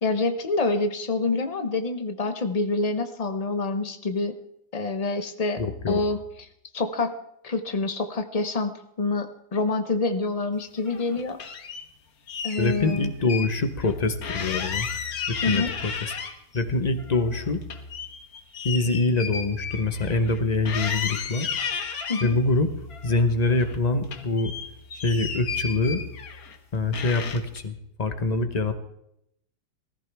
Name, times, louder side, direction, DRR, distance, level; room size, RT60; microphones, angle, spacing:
voice 1, 0.0-4.4 4.7-5.6 5.9-6.5 6.7-7.1 7.4-11.4 12.4-13.1 15.4-15.7 22.1-22.4, left 3 dB, 85° left, 7 dB, 0.3 m, -27 dB
voice 2, 5.6-6.0 12.6-14.9 15.3-16.1 16.5-17.6 18.6-21.5 22.2-22.7 23.0-24.5 24.9-26.0 26.7-28.8, left 3 dB, 35° left, 9 dB, 0.7 m, -25 dB
sound 1, 10.8-11.8 12.3-13.5 13.8-13.9 14.2-16.6 17.0-20.4 20.7-22.3 22.9-23.8 24.0-26.6 26.9-27.6, left 6 dB, 55° left, 1.5 m, -33 dB
20.0 x 14.5 x 3.4 m, 0.78 s
omnidirectional pair, 2.0 m